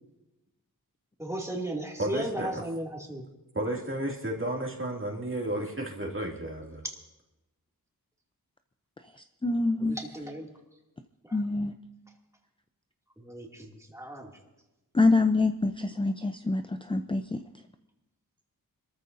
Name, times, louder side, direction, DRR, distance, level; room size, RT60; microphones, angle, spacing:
voice 1, 1.2-3.2 9.8-10.5 13.2-14.3, right 1 dB, 10° right, -1 dB, 2.5 m, -36 dB
voice 2, 2.0-2.6 3.5-6.8, right 1 dB, 35° right, 0 dB, 2.5 m, -32 dB
voice 3, 9.4-10.0 11.3-11.7 14.9-17.4, left 3 dB, 15° left, 8 dB, 0.5 m, -25 dB
27.0 x 14.0 x 2.7 m, 1.0 s
wide cardioid pair, 75°, 36 cm